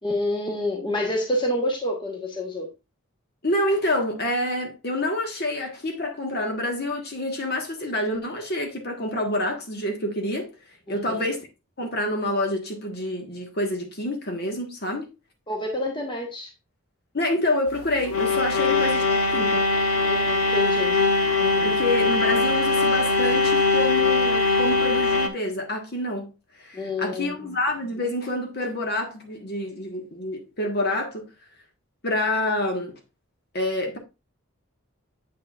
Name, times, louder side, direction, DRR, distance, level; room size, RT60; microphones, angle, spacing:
voice 1, 0.0-2.7 10.9-11.2 15.5-16.5 20.0-21.0 21.4-21.7 26.7-27.3, left 1 dB, 20° left, 1.2 m, -28 dB
voice 2, 3.4-10.5 10.9-11.5 11.8-15.1 17.1-19.6 21.6-26.3 26.6-31.3 32.0-33.0 33.5-34.0, left 1 dB, 50° left, 1.5 m, -27 dB
sound 1, 17.7-25.3, left 3 dB, 80° left, 0.9 m, -21 dB
7.8 x 6.6 x 2.5 m
head